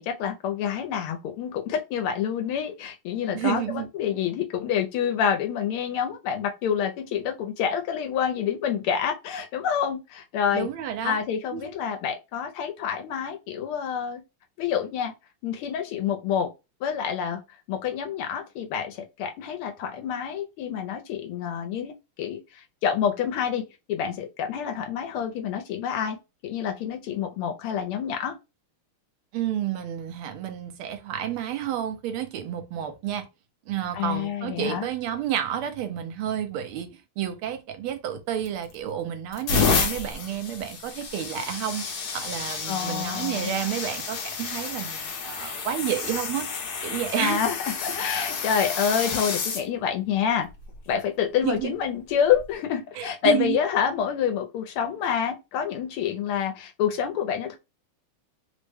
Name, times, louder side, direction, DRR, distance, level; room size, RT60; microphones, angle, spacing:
voice 1, 0.0-10.7 11.0-14.2 14.6-15.1 15.4-16.5 16.8-17.4 17.7-26.2 26.4-28.4 33.9-34.9 42.7-43.5 47.2-50.5 50.9-57.6, left 8 dB, 80° left, 1.4 m, -27 dB
voice 2, 3.3-3.9 10.5-11.2 11.5-11.8 29.3-33.2 33.7-41.8 42.1-46.5 46.8-47.4 51.4-51.7 53.0-53.6, right 10 dB, 80° right, 1.5 m, -30 dB
sound 1, 38.5-38.8 39.3-49.6 50.5-50.8 52.3-52.4, left 5 dB, 60° left, 1.1 m, -30 dB
3.6 x 2.1 x 3.4 m
omnidirectional pair, 2.4 m